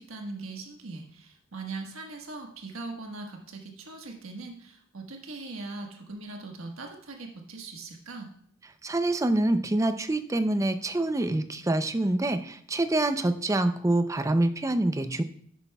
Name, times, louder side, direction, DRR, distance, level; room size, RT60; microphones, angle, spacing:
voice 1, 0.0-8.3, right 3 dB, 85° right, 2 dB, 1.4 m, -40 dB
voice 2, 8.8-15.2, right 1 dB, 15° right, 9 dB, 0.5 m, -26 dB
11.0 x 8.3 x 2.3 m, 0.64 s
head